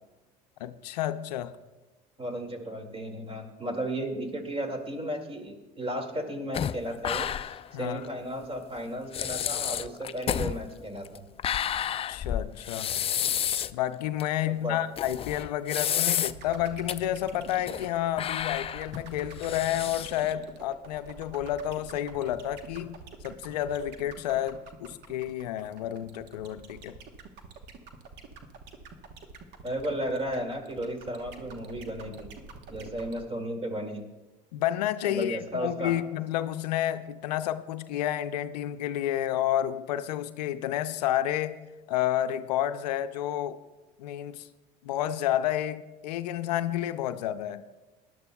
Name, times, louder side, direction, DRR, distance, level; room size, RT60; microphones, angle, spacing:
voice 1, 0.6-1.6 7.7-8.0 12.1-13.0 13.7-26.9 34.5-41.6 41.9-43.6 44.0-44.5 44.8-47.6, left 12 dB, 80° left, 11 dB, 0.5 m, -30 dB
voice 2, 2.2-11.3 14.5-14.8 29.6-32.3 32.7-34.1 35.0-36.0, right 1 dB, 25° right, 5 dB, 2.2 m, -34 dB
sound 1, 6.5-7.7 8.0-8.1 8.8-8.9 9.1-13.8 14.2-14.3 15.0-16.5 16.9-17.0 17.4-17.9 18.2-20.3, left 9 dB, 30° left, 0.4 m, -30 dB
sound 2, 16.3-33.3, right 5 dB, 55° right, 1.2 m, -46 dB
19.5 x 11.0 x 2.3 m, 1.1 s
hypercardioid pair, 70°, 21 cm